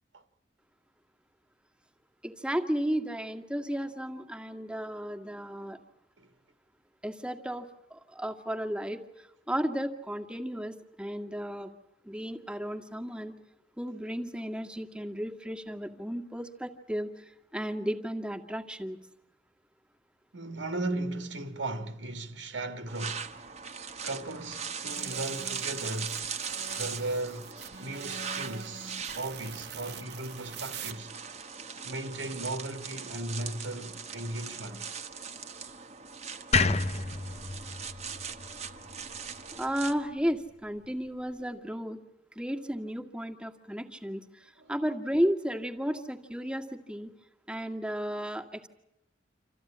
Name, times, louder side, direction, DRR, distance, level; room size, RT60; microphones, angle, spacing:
voice 1, 2.2-5.8 7.0-11.7 12.1-13.3 13.8-19.0 39.6-42.0 42.4-47.1 47.5-48.7, equal, 5° right, 1.8 m, -34 dB
voice 2, 20.3-23.3 24.0-26.2 26.8-27.5 27.8-31.2 31.8-34.9 44.6-44.7, right 2 dB, 85° right, 1.7 m, -36 dB
sound 1, 22.9-39.9, right 6 dB, 35° right, 1.3 m, -40 dB
sound 2, 24.9-30.9, right 6 dB, 65° right, 1.2 m, -45 dB
sound 3, 36.5-39.7, left 4 dB, 35° left, 1.1 m, -30 dB
27.5 x 14.5 x 9.9 m
head